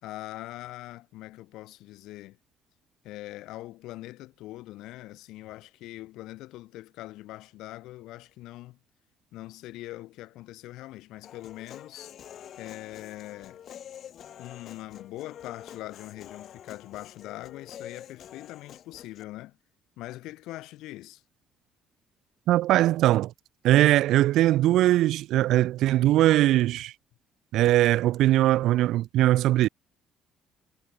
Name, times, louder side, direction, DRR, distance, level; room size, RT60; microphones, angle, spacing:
voice 1, 0.0-2.4 3.0-8.8 9.3-12.1 12.6-13.6 14.4-19.6 20.0-21.2, left 17 dB, 85° left, 1.1 m, -42 dB
Human voice, 11.2-19.2, left 10 dB, 55° left, 1.6 m, -47 dB
voice 2, 22.5-23.3 23.6-26.9 27.5-29.7, right 14 dB, 75° right, 0.3 m, -21 dB
cardioid pair, 125°, 0 cm